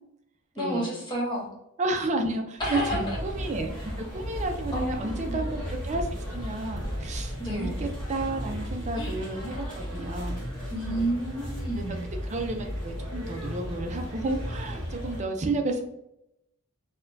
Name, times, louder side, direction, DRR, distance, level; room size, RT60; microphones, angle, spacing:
voice 1, 0.5-1.5 2.6-3.2 4.7-5.6 7.4-7.9 8.9-9.2 10.7-12.1, right 1 dB, 20° left, -4 dB, 1.2 m, -31 dB
voice 2, 1.8-3.8 4.1-10.4 10.8-11.0 12.3-15.8, right 2 dB, 30° right, 4 dB, 0.4 m, -31 dB
sound 1, 2.6-15.2, equal, 5° left, 1.4 m, -35 dB
4.2 x 2.2 x 2.6 m, 0.82 s
head